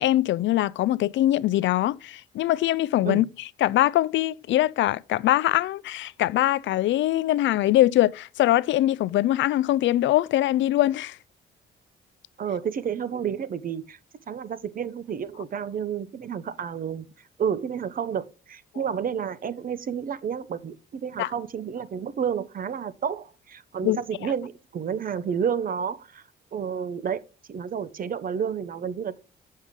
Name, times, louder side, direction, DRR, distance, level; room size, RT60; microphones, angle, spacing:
voice 1, 0.0-3.2 3.6-11.2 21.2-21.3 23.8-24.0, left 14 dB, 70° left, 0.4 m, -22 dB
voice 2, 12.4-14.0 14.3-26.2 26.5-27.2 27.5-29.2, right 7 dB, 45° right, 0.7 m, -30 dB
7.5 x 6.4 x 3.6 m
cardioid pair, 90°, 20 cm